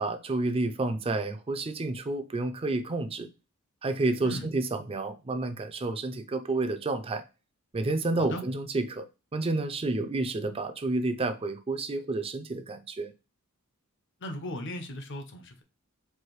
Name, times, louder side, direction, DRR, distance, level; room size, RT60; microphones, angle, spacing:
voice 1, 0.0-3.3 3.8-7.2 7.7-9.1 9.3-13.1, right 2 dB, 25° right, 0.4 m, -30 dB
voice 2, 14.2-15.6, left 1 dB, 55° left, 0.8 m, -37 dB
4.6 x 2.6 x 3.0 m
head